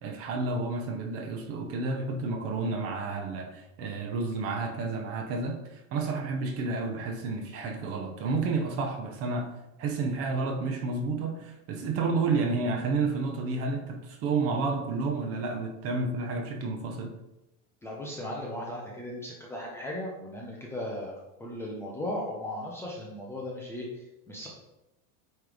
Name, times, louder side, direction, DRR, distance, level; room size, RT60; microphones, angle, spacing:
voice 1, 0.0-9.5 9.8-17.2, right 3 dB, 35° right, 4 dB, 0.9 m, -30 dB
voice 2, 17.8-24.5, left 1 dB, 5° left, -3 dB, 0.6 m, -37 dB
8.9 x 3.3 x 4.9 m, 0.94 s
supercardioid pair, 175°, 39 cm